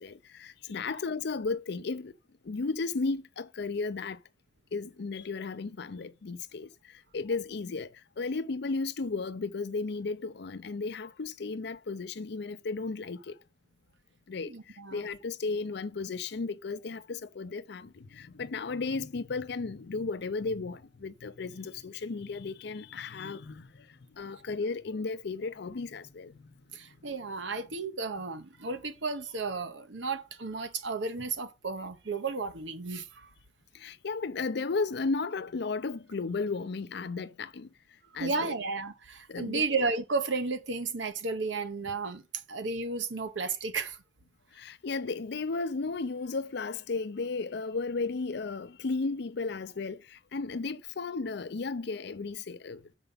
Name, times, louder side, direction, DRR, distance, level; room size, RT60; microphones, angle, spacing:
voice 1, 0.0-2.1 2.5-4.2 4.7-6.7 7.1-7.9 8.2-13.4 14.3-14.5 14.9-23.7 24.2-26.3 33.8-37.7 38.1-38.6 39.3-39.6 44.6-52.8, left 4 dB, 65° left, 0.6 m, -34 dB
voice 2, 14.4-15.0 26.7-33.3 38.2-42.2 42.5-44.0, right 4 dB, 90° right, 1.1 m, -33 dB
6.8 x 4.5 x 5.5 m
head